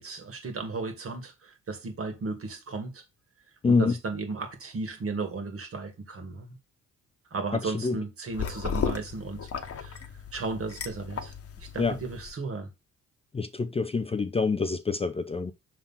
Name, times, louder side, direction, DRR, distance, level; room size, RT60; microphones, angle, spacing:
voice 1, 0.0-3.0 3.6-6.6 7.3-10.1 10.3-12.7, right 4 dB, 50° right, 2.0 m, -35 dB
voice 2, 3.6-3.9 7.5-8.0 11.8-12.0 13.3-15.5, left 4 dB, 20° left, 0.5 m, -26 dB
sound 1, 8.3-12.3, left 6 dB, 50° left, 1.1 m, -35 dB
5.9 x 3.7 x 5.5 m
cardioid pair, 90°, 30 cm